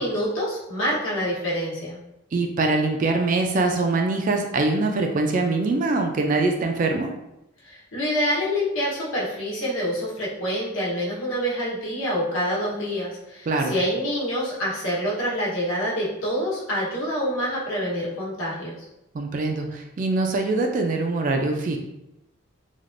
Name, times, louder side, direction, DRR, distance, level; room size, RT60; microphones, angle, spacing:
voice 1, 0.0-2.0 7.6-18.7, equal, 75° left, -6 dB, 1.1 m, -26 dB
voice 2, 2.3-7.1 13.5-13.7 19.1-21.8, right 3 dB, 40° right, 3 dB, 0.3 m, -23 dB
3.3 x 2.4 x 2.5 m, 0.88 s
head